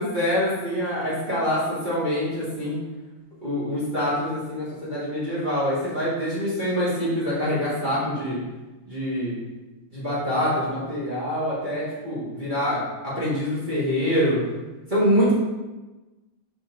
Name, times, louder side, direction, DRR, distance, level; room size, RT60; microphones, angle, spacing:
voice 1, 0.0-2.8 3.4-8.4 8.9-9.3 9.9-14.4 14.9-15.3, equal, 25° right, -11 dB, 2.2 m, -25 dB
7.5 x 4.4 x 3.8 m, 1.1 s
omnidirectional pair, 2.2 m